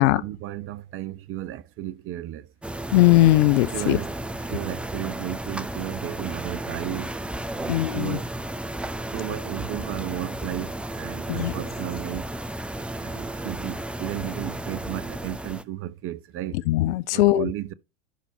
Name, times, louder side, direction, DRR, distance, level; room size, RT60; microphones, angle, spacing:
voice 1, 0.0-2.5 3.7-4.1 4.5-7.1 7.5-8.3 9.1-12.3 13.0-16.6 17.1-17.7, right 14 dB, 35° right, 0.8 m, -34 dB
sound 1, 2.6-15.6, right 1 dB, 5° right, 0.5 m, -33 dB
voice 2, 2.9-4.0 7.7-8.2 11.3-11.5 16.7-17.5, left 16 dB, 60° left, 0.7 m, -19 dB
11.5 x 4.1 x 4.5 m
hypercardioid pair, 95°, 40 cm